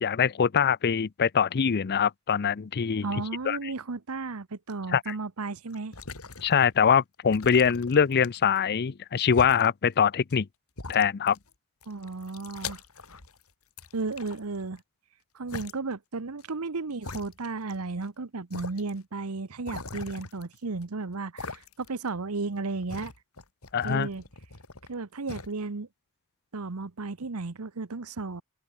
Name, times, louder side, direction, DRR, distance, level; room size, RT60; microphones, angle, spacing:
voice 1, 0.0-3.6 4.9-5.1 6.4-10.5 10.9-11.4 23.7-24.1, left 7 dB, 50° left, 0.5 m, -23 dB
voice 2, 3.0-5.9 11.9-12.8 13.9-14.8 15.3-23.1 23.8-24.2 24.9-25.9 26.5-28.4, right 3 dB, 90° right, 1.0 m, -34 dB
sound 1, 5.7-6.8 7.3-8.6 9.3-9.7 10.3-10.4 10.8-11.5 11.8-13.4 13.8-14.8 15.5-15.7 16.4-16.5 17.0-17.8 18.0-18.1 18.5-18.9 19.7-20.8 21.4-22.0 22.3-24.9 25.3-25.5, left 4 dB, 75° left, 3.6 m, -42 dB
open air
head